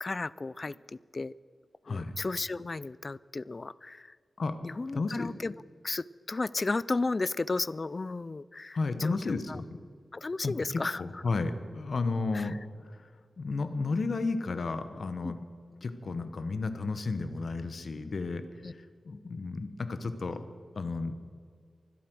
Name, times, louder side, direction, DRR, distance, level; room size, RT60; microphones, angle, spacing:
voice 1, 0.0-1.3 1.9-4.2 4.6-5.5 5.8-9.6 10.1-11.2 12.3-12.6 15.2-15.3 18.6-18.7, left 3 dB, 35° left, 20 dB, 0.3 m, -34 dB
voice 2, 4.9-5.3 8.7-9.6 10.4-13.1 13.4-15.4 15.8-20.4 20.8-21.1, left 3 dB, 55° left, 10 dB, 1.1 m, -33 dB
24.0 x 8.5 x 6.2 m, 2.1 s
wide cardioid pair, 130°, 0 cm